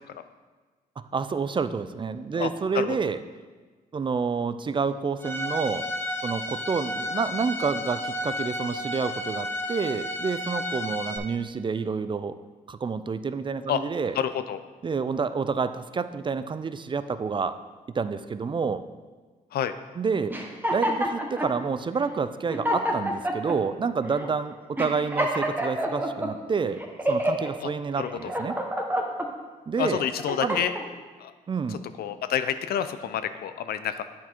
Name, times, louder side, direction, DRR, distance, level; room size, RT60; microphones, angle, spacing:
voice 1, 1.1-3.2 3.9-5.9 6.2-12.3 12.7-14.2 14.8-17.6 17.9-18.8 20.0-20.4 20.7-26.8 27.1-28.6 29.7-30.0 30.4-30.6 31.5-31.8, right 5 dB, 30° right, 12 dB, 0.4 m, -28 dB
Bowed string instrument, 5.2-11.2, left 1 dB, 15° left, 0.8 m, -32 dB
voice 2, 14.1-14.6 19.5-19.7 27.6-27.7 28.0-28.3 29.8-30.7 31.2-31.3 31.7-34.0, left 9 dB, 75° left, 11 dB, 0.4 m, -28 dB
sound 1, 20.3-21.5 22.1-22.2 22.5-23.6 24.1-24.3 24.8-26.3 26.8-27.5 28.0-29.3 29.8-30.8, equal, 10° right, 1.0 m, -28 dB
8.3 x 4.4 x 4.3 m, 1.4 s
cardioid pair, 70°, 16 cm